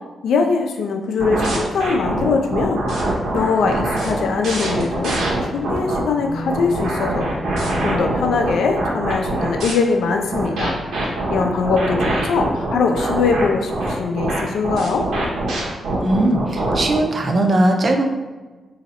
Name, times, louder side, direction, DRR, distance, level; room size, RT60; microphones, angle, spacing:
voice 1, 0.2-5.1 5.4-7.3 7.8-15.0, left 4 dB, 90° left, 3 dB, 0.5 m, -22 dB
sound 1, 1.2-6.0 6.5-9.7 10.3-17.0, right 2 dB, 80° right, 0.9 m, -23 dB
sound 2, 3.1-13.9, left 1 dB, 35° left, 0.6 m, -35 dB
voice 2, 16.0-18.1, right 1 dB, 30° right, 3 dB, 0.4 m, -18 dB
3.0 x 2.8 x 4.1 m, 1.3 s
wide cardioid pair, 165°, 0 cm